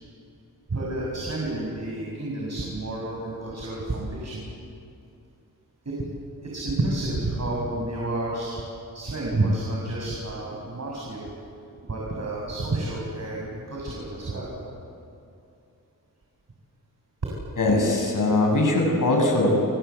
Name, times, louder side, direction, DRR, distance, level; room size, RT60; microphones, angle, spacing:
voice 1, 0.7-4.4 5.8-6.0 6.4-8.6 8.9-11.3 11.8-14.5, right 2 dB, 45° right, -3 dB, 6.8 m, -30 dB
voice 2, 17.6-19.6, left 2 dB, 60° left, 1 dB, 6.7 m, -21 dB
29.5 x 23.5 x 8.3 m, 2.6 s
wide cardioid pair, 90°, 36 cm